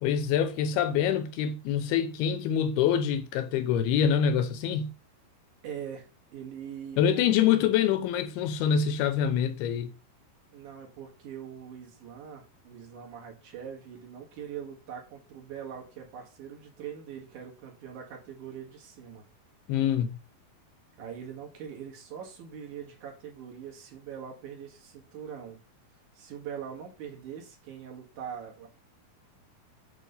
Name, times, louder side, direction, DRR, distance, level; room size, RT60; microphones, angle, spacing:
voice 1, 0.0-4.9 7.0-9.9 19.7-20.2, left 8 dB, 85° left, 2.8 m, -25 dB
voice 2, 5.6-7.5 10.5-19.3 21.0-25.6 26.1-28.7, right 8 dB, 60° right, 2.9 m, -42 dB
8.3 x 3.3 x 5.4 m
omnidirectional pair, 4.4 m